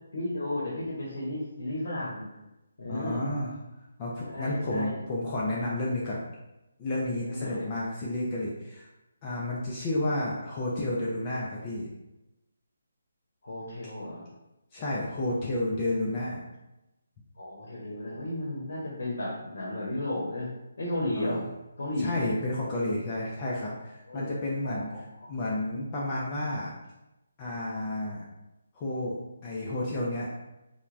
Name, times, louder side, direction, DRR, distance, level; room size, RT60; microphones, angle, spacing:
voice 1, 0.1-2.3 2.8-3.3 4.2-5.0 7.3-7.7 13.4-14.3 17.4-20.5 20.8-21.4 21.8-22.3 24.1-24.3 24.6-25.0, left 1 dB, 70° left, -4 dB, 0.8 m, -33 dB
voice 2, 2.9-3.5 4.0-6.2 6.8-8.9 9.2-11.9 14.7-16.4 21.2-21.5 22.0-26.7 27.4-28.2 28.7-30.4, left 1 dB, 25° left, -5 dB, 0.4 m, -31 dB
3.2 x 2.1 x 2.4 m, 0.97 s
hypercardioid pair, 165°, 0 cm